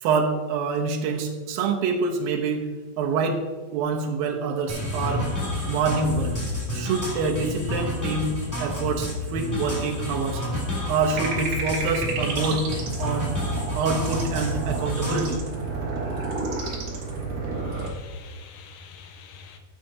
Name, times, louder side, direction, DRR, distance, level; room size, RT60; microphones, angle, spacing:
voice 1, 0.0-2.7 3.0-3.4 3.7-5.3 5.7-6.4 6.7-8.3 8.6-10.4 10.9-12.6 13.0-13.3 13.8-15.4, right 4 dB, 80° right, 2.7 m, -26 dB
sound 1, 4.7-15.3, left 1 dB, 5° left, 2.1 m, -30 dB
sound 2, 11.1-17.9, right 3 dB, 65° right, 3.0 m, -31 dB
voice 2, 17.7-19.6, left 2 dB, 75° left, 2.4 m, -43 dB
13.5 x 7.6 x 2.8 m
omnidirectional pair, 4.1 m